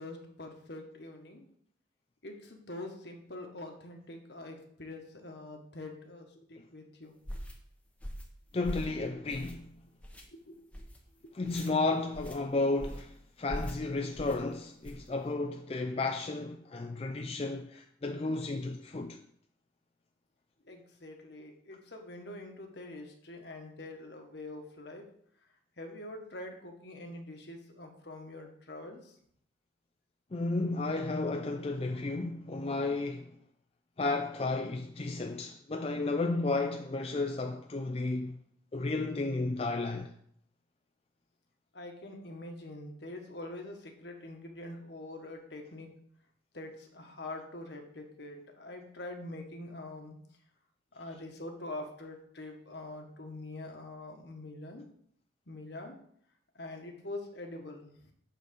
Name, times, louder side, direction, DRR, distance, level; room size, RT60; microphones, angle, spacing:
voice 1, 0.0-1.5 2.2-7.1 10.3-10.9 11.2-11.3 20.7-25.1 25.8-29.1 41.7-45.9 46.5-50.1 50.9-54.8 55.5-56.0 56.5-58.1, left 2 dB, 65° left, 1.4 m, -44 dB
Walking on a tatami, 7.3-7.5 8.0-8.3 8.6-9.0 9.3-9.7 10.0-10.2 10.7-11.0 11.4-11.7 12.1-12.4 12.8-13.1 13.5-13.8 14.2-14.4 14.8-15.1, equal, 5° left, 0.9 m, -41 dB
voice 2, 8.5-9.7 11.3-19.2 30.3-33.3 34.0-38.4 38.7-40.1, left 3 dB, 30° left, 0.4 m, -33 dB
8.1 x 4.0 x 6.4 m
head